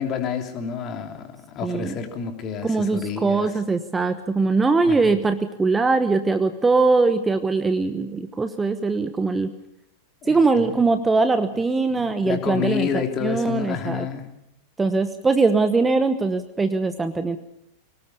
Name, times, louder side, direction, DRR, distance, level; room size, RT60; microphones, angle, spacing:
voice 1, 0.0-3.5 4.8-5.1 10.2-10.8 11.9-14.3, left 7 dB, 35° left, 5 dB, 3.1 m, -29 dB
voice 2, 1.6-1.9 2.6-9.5 10.3-14.1 14.8-17.4, right 3 dB, 10° right, 10 dB, 1.1 m, -21 dB
24.0 x 19.0 x 6.9 m, 0.78 s
figure-of-eight pair, 90°, 0 cm